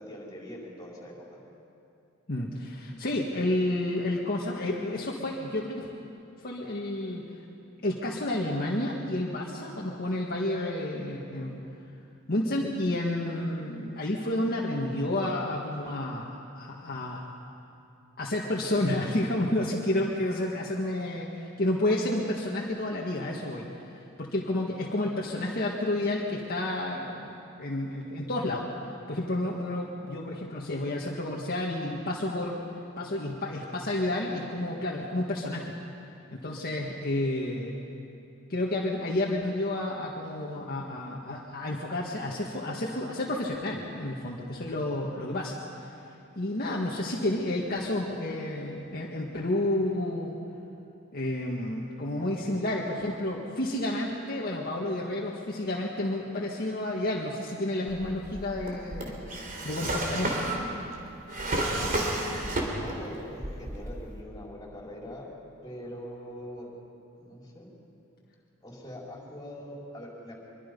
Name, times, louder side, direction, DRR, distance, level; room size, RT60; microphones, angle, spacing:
voice 1, 0.0-1.4 62.0-65.3 65.6-66.7 67.1-67.7 68.6-70.4, equal, 20° left, -3 dB, 4.8 m, -43 dB
voice 2, 2.3-5.9 6.4-7.4 7.8-11.6 12.3-17.3 18.2-28.7 29.1-32.5 33.0-35.7 36.3-37.7 38.5-50.4 51.1-60.5, left 1 dB, 50° left, -3 dB, 1.8 m, -30 dB
Drawer open or close, 57.9-63.1 63.4-64.2, right 1 dB, 45° right, 3.2 m, -31 dB
24.5 x 23.5 x 5.4 m, 2.7 s
head